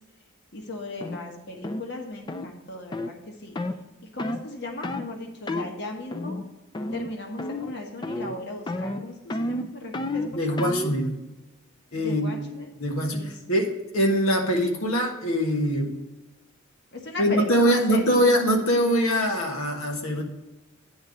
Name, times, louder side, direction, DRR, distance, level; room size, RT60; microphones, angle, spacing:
voice 1, 0.5-3.5 4.1-6.4 6.9-10.6 11.9-12.7 13.1-13.3 16.9-18.2, left 2 dB, 55° left, 2 dB, 1.3 m, -37 dB
sound 1, 1.0-1.2 1.6-1.9 2.3-2.5 2.9-3.1 3.6-3.8 4.2-4.5 4.8-5.1 5.5-5.7 6.1-6.5 6.7-7.1 7.4-7.8 8.0-8.4 8.7-11.0, left 1 dB, 20° left, 0.4 m, -30 dB
voice 2, 10.3-11.2 11.9-12.4 12.8-15.9 17.2-20.2, equal, 90° left, 2 dB, 1.5 m, -23 dB
9.5 x 4.0 x 7.2 m, 1.1 s
head